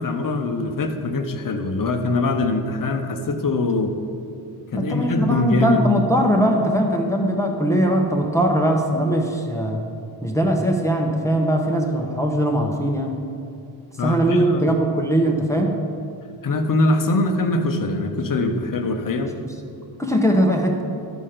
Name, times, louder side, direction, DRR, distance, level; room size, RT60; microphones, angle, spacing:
voice 1, 0.0-3.9 4.7-5.8 14.0-14.7 16.4-19.4, left 2 dB, 40° left, 6 dB, 0.9 m, -22 dB
voice 2, 4.7-9.8 10.2-13.2 14.0-15.8 19.4-19.5 20.0-20.8, right 1 dB, 5° left, 0 dB, 0.9 m, -20 dB
12.5 x 4.3 x 5.0 m, 2.5 s
cardioid pair, 75°, 49 cm